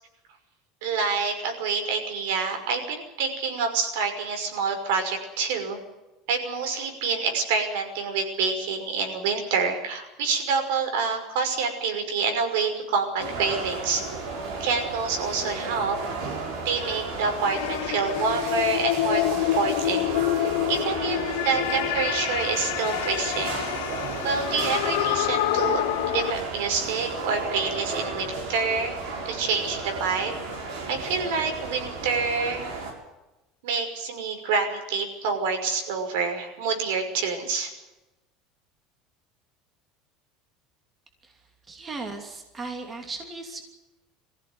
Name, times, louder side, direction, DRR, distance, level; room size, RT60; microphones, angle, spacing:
voice 1, 0.8-5.8 6.3-14.0 14.6-16.0 16.6-20.1 20.7-23.6 24.2-25.8 26.1-29.0 29.2-30.3 30.9-32.8 33.6-37.7, right 5 dB, 85° right, 5 dB, 5.7 m, -27 dB
sound 1, 13.2-32.9, right 3 dB, 65° right, 6.8 m, -33 dB
sound 2, 17.5-26.3, left 16 dB, 85° left, 0.7 m, -27 dB
voice 2, 41.2-43.6, right 3 dB, 15° right, 3 dB, 2.8 m, -37 dB
23.5 x 15.5 x 9.6 m, 1.0 s
cardioid pair, 170°, 0 cm